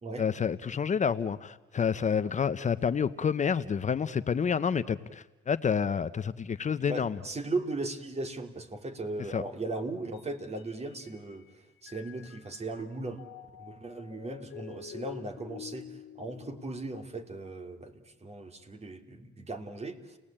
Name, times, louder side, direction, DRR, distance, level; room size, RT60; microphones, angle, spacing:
voice 1, 0.2-7.2 9.3-9.4, left 6 dB, 40° left, 13 dB, 0.8 m, -29 dB
voice 2, 6.9-13.2 13.6-20.2, right 2 dB, 30° right, 6 dB, 2.9 m, -37 dB
Mallet percussion, 10.1-11.5 11.9-17.3, left 10 dB, 80° left, 1.8 m, -48 dB
30.0 x 19.0 x 8.7 m, 1.1 s
cardioid pair, 90°, 20 cm